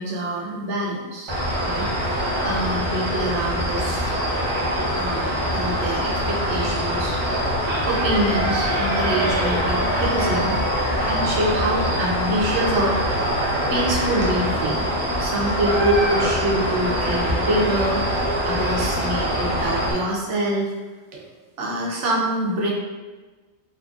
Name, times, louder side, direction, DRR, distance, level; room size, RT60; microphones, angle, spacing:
voice 1, 0.0-1.3 1.6-4.1 4.9-5.2 5.5-7.2 7.8-10.5 11.0-13.4 13.7-14.9 15.2-18.0 18.4-20.6 21.1-21.3 21.6-22.7, right 1 dB, 75° right, -2 dB, 1.0 m, -25 dB
sound 1, 1.3-19.9, equal, 35° right, 0.5 m, -23 dB
3.7 x 2.7 x 2.4 m, 1.3 s
omnidirectional pair, 1.2 m